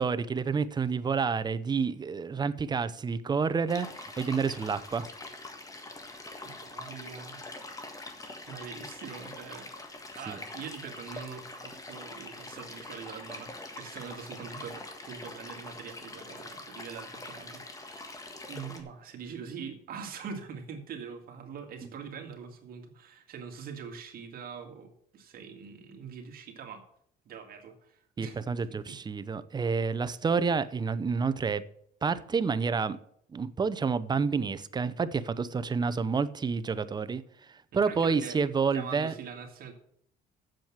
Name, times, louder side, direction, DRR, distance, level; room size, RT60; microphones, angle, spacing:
voice 1, 0.0-5.1 10.3-10.4 28.2-31.6 32.0-33.0 33.3-37.2 37.5-39.1, right 5 dB, 25° right, 0.6 m, -29 dB
sound 1, 3.7-18.8, left 2 dB, 20° left, 1.6 m, -44 dB
voice 2, 6.4-7.4 8.5-9.7 10.1-18.1 18.5-26.8 27.3-28.4 37.8-38.4 38.7-39.7, right 6 dB, 60° right, 2.1 m, -43 dB
7.7 x 7.3 x 7.3 m
cardioid pair, 110°, 17 cm